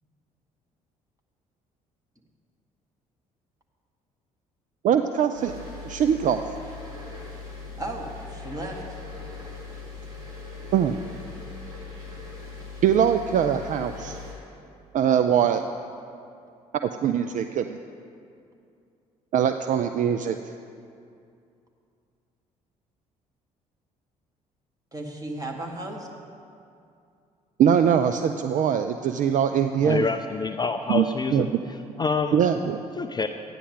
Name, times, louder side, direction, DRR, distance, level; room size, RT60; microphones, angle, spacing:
voice 1, 4.8-6.4 10.7-11.0 12.8-14.2 14.9-15.6 16.8-17.8 19.3-20.4 27.6-30.1 30.9-31.0 31.3-31.6 32.3-32.8, right 8 dB, 45° right, 8 dB, 0.4 m, -22 dB
sound 1, 5.3-14.3, left 4 dB, 80° right, 1.9 m, -40 dB
voice 2, 7.8-9.0 24.9-26.1, right 1 dB, 20° right, 0 dB, 1.9 m, -35 dB
voice 3, 29.8-31.5 32.0-32.4 33.0-33.3, left 4 dB, 20° left, 8 dB, 0.4 m, -26 dB
13.0 x 9.7 x 3.7 m, 2.5 s
figure-of-eight pair, 50°, 19 cm